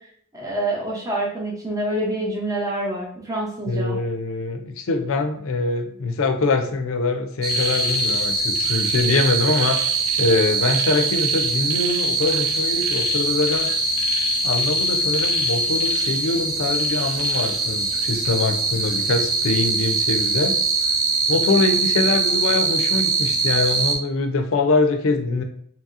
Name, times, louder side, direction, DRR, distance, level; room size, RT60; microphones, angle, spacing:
voice 1, 0.3-4.0, right 1 dB, 15° right, -4 dB, 0.5 m, -26 dB
voice 2, 3.7-9.8 10.2-13.7 14.4-20.5 21.3-25.4, left 3 dB, 65° left, 6 dB, 0.4 m, -23 dB
sound 1, 7.4-23.9, right 3 dB, 85° right, 0.6 m, -22 dB
2.8 x 2.7 x 2.4 m, 0.63 s
head